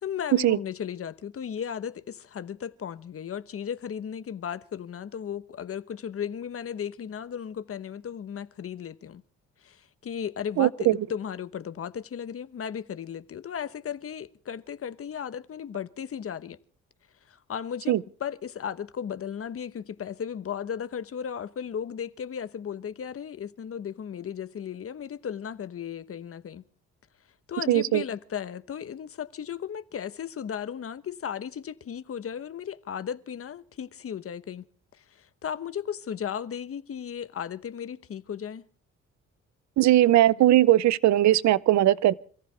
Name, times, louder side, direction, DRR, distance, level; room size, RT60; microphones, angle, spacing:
voice 1, 0.0-9.2 9.6-16.6 17.3-26.6 27.5-34.6 35.0-38.6, left 8 dB, 50° left, 1.1 m, -35 dB
voice 2, 10.6-11.0 17.9-18.0 27.7-28.0 39.8-42.1, right 14 dB, 70° right, 0.7 m, -19 dB
28.0 x 14.5 x 3.4 m
cardioid pair, 90°, 30 cm